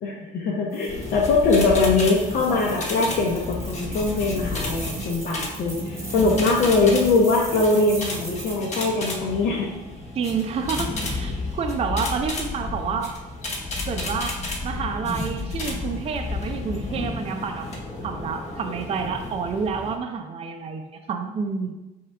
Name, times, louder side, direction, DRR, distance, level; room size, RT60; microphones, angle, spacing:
voice 1, 0.0-9.7, left 3 dB, 70° left, -3 dB, 0.7 m, -22 dB
sound 1, 0.7-9.0, right 2 dB, 15° right, 0.9 m, -41 dB
sound 2, 0.9-20.0, left 2 dB, 40° left, 1.0 m, -32 dB
voice 2, 10.1-13.1 13.9-17.7 18.0-21.7, right 5 dB, 35° right, 5 dB, 0.5 m, -29 dB
4.3 x 3.6 x 3.4 m, 1.0 s
cardioid pair, 110°, 17 cm